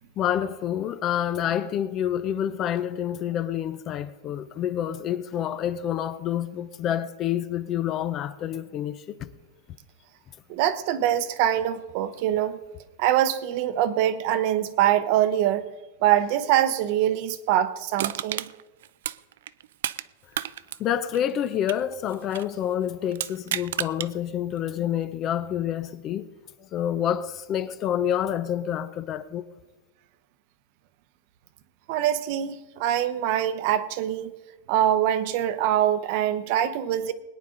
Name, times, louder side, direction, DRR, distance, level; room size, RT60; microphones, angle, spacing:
voice 1, 0.2-9.3 20.8-26.3 26.6-29.4, left 10 dB, 25° left, 0.5 m, -28 dB
voice 2, 10.5-12.6 13.0-15.7 16.0-18.5 31.9-34.3 34.7-37.1, right 11 dB, 40° right, 0.8 m, -24 dB
Crushing, 18.0-20.1 20.3-22.6 23.1-24.1 24.6-24.7, right 12 dB, 65° right, 0.5 m, -32 dB
21.5 x 10.0 x 3.8 m
supercardioid pair, 170°, 0 cm